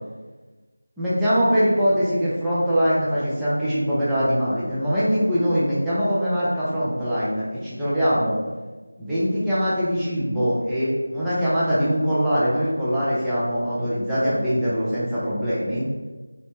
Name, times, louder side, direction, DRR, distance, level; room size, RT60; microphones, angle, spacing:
voice 1, 1.0-8.4 9.0-15.9, equal, 5° right, -12 dB, 0.4 m, -22 dB
2.7 x 2.0 x 2.9 m, 1.3 s
figure-of-eight pair, 170°, 0 cm